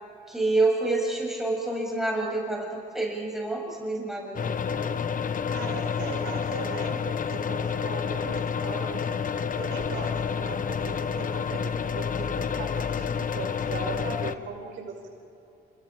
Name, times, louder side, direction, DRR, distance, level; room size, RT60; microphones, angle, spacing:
voice 1, 0.3-4.9, right 2 dB, ahead, -2 dB, 7.6 m, -28 dB
sound 1, 4.4-14.4, left 6 dB, 40° left, 1.1 m, -29 dB
voice 2, 5.5-9.0 9.5-15.2, right 5 dB, 85° right, 2 dB, 5.4 m, -38 dB
29.5 x 28.5 x 4.9 m, 2.6 s
cardioid pair, 90°, 20 cm